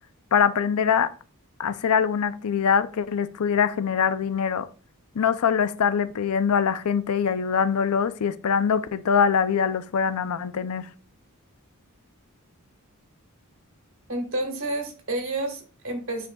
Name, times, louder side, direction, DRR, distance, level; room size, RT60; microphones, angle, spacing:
voice 1, 0.3-1.1 1.6-4.7 5.2-10.9, left 7 dB, 85° left, 0.5 m, -23 dB
voice 2, 14.1-16.3, right 2 dB, 60° right, 1.9 m, -30 dB
9.0 x 5.0 x 2.3 m
head